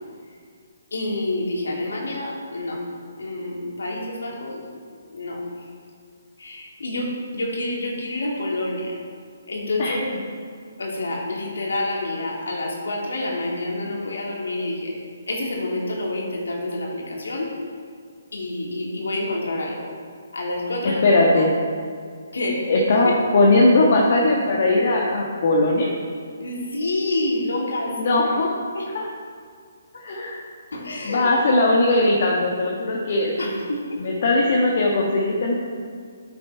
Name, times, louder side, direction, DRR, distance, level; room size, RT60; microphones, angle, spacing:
voice 1, 0.9-2.8 3.2-4.6 5.1-5.4 6.4-7.1 7.3-8.9 9.5-10.1 10.8-14.9 15.3-17.5 18.3-19.9 20.3-21.0 21.4-21.5 22.3-22.6 23.0-23.1 26.4-28.4 28.7-28.9 30.7-31.3 33.4-33.8, left 2 dB, 85° left, -2 dB, 2.4 m, -28 dB
voice 2, 20.8-21.5 22.7-25.9 28.0-28.5 28.9-29.1 30.0-30.4 31.0-33.5 34.0-35.6, left 2 dB, 50° left, -2 dB, 1.4 m, -19 dB
9.1 x 7.7 x 4.6 m, 2.1 s
hypercardioid pair, 160°, 0 cm